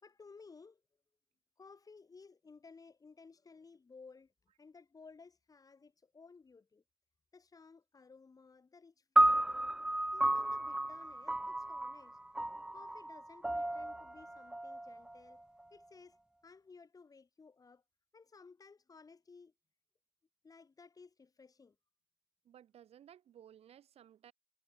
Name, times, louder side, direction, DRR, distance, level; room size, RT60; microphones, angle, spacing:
voice 1, 0.0-0.8 1.6-4.3 4.6-6.8 7.3-9.8 10.1-12.2 12.7-15.4 15.7-16.2 16.4-17.8 18.1-19.5 20.4-21.8, left 4 dB, 30° left, 4.9 m, -57 dB
sound 1, 9.2-15.6, right 1 dB, 5° right, 0.6 m, -33 dB
voice 2, 22.4-24.3, right 10 dB, 55° right, 3.9 m, -58 dB
supercardioid pair, 70°, 12 cm